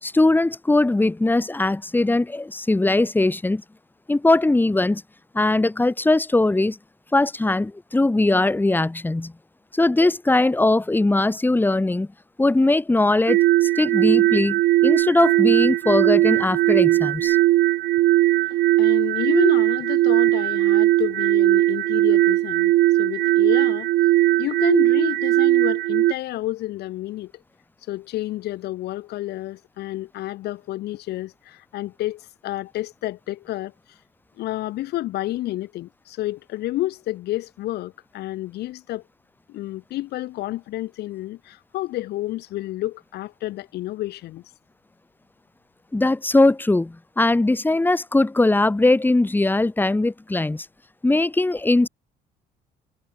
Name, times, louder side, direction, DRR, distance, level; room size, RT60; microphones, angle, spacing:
voice 1, 0.0-3.6 4.1-5.0 5.3-6.8 7.1-9.3 9.7-12.1 12.4-17.4 45.9-50.7 51.0-51.9, left 2 dB, 10° left, 3.0 m, -20 dB
sound 1, 13.3-26.1, right 16 dB, 75° right, 1.7 m, -19 dB
voice 2, 18.5-22.7 23.0-23.9 24.3-27.4 27.9-34.0 34.4-39.0 39.5-44.4, left 16 dB, 75° left, 2.2 m, -30 dB
cardioid pair, 110°, 17 cm